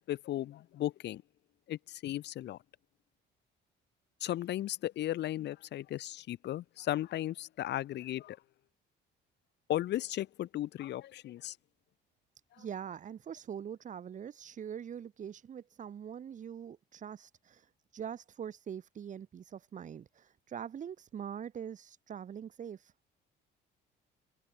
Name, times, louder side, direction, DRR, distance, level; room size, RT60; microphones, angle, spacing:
voice 1, 0.1-1.2 1.7-2.6 4.2-8.4 9.7-11.5, left 13 dB, 60° left, 2.1 m, -36 dB
voice 2, 12.6-17.6 17.9-22.8, right 8 dB, 40° right, 5.4 m, -43 dB
cardioid pair, 155°, 20 cm